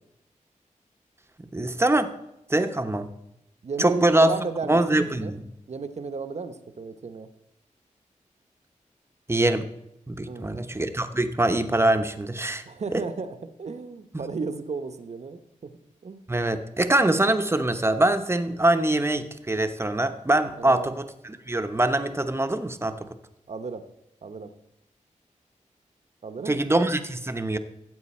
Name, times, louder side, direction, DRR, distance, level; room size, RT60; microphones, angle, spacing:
voice 1, 1.5-2.1 2.5-3.1 3.8-4.4 4.7-5.5 9.3-9.7 10.1-12.6 12.9-13.0 16.3-23.1 26.5-27.6, right 1 dB, 20° right, 8 dB, 0.9 m, -23 dB
voice 2, 3.6-4.8 5.2-5.3 5.7-7.3 10.3-10.8 12.7-15.7 16.0-16.3 20.6-20.9 23.5-23.8 24.2-24.5 26.2-26.8, right 4 dB, 55° right, 9 dB, 0.9 m, -34 dB
14.5 x 7.9 x 4.3 m, 0.85 s
cardioid pair, 65°, 13 cm